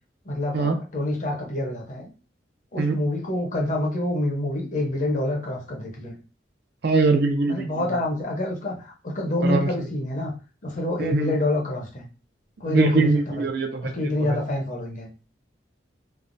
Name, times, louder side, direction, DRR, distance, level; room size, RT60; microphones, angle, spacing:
voice 1, 0.2-2.1 2.7-6.2 7.5-10.3 10.6-12.0 12.6-13.5 13.8-15.1, left 1 dB, 45° left, 0 dB, 0.8 m, -27 dB
voice 2, 6.8-7.9 9.4-9.7 11.0-11.3 12.7-13.9 14.2-14.4, right 3 dB, 60° right, 5 dB, 0.5 m, -22 dB
3.3 x 2.1 x 2.6 m, 0.34 s
head